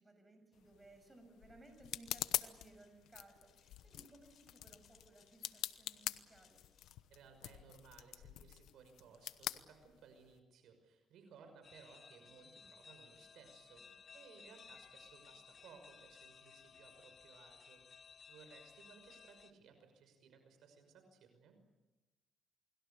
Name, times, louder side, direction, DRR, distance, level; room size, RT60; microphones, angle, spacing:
voice 1, 0.0-6.6, right 2 dB, 20° right, 6 dB, 7.2 m, -61 dB
sound 1, 0.5-10.4, left 13 dB, 90° left, 1.0 m, -45 dB
sound 2, 1.6-6.9, left 8 dB, 65° left, 5.0 m, -71 dB
voice 2, 7.1-21.6, right 5 dB, 80° right, 7 dB, 5.8 m, -61 dB
sound 3, 11.6-19.5, left 6 dB, 45° left, 1.5 m, -59 dB
29.0 x 21.5 x 7.0 m, 1.1 s
cardioid pair, 90°, 0 cm